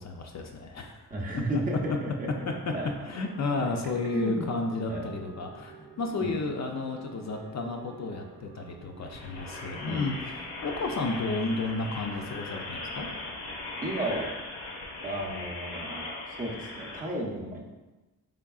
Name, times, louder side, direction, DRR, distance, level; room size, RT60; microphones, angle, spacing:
voice 1, 0.0-1.1 1.3-1.4 3.0-10.2 10.6-13.1, left 3 dB, 45° left, 2 dB, 0.4 m, -32 dB
voice 2, 1.1-2.3 2.7-2.9 4.1-4.5 4.9-5.0 6.2-6.3 9.9-10.0 13.8-14.3 15.0-17.7, right 1 dB, 20° right, -2 dB, 0.6 m, -33 dB
sound 1, 2.8-10.6, right 3 dB, 80° right, 0.6 m, -49 dB
sound 2, 9.0-17.0, left 2 dB, 90° left, 0.7 m, -39 dB
3.6 x 3.4 x 2.3 m, 1.1 s
cardioid pair, 85°, 39 cm